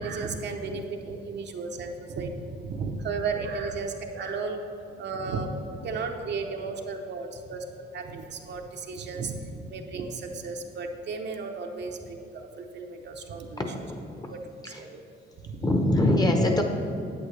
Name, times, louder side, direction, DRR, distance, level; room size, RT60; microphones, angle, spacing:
voice 1, 0.0-4.6 4.9-5.5 5.7-7.6 7.9-13.6 14.3-14.4 14.7-15.0 15.4-15.6, right 4 dB, 60° right, 3 dB, 0.8 m, -34 dB
voice 2, 13.6-14.3 14.6-14.8 15.6-16.6, left 1 dB, 20° left, 3 dB, 0.9 m, -24 dB
8.6 x 8.1 x 3.3 m, 2.5 s
cardioid pair, 90°, 20 cm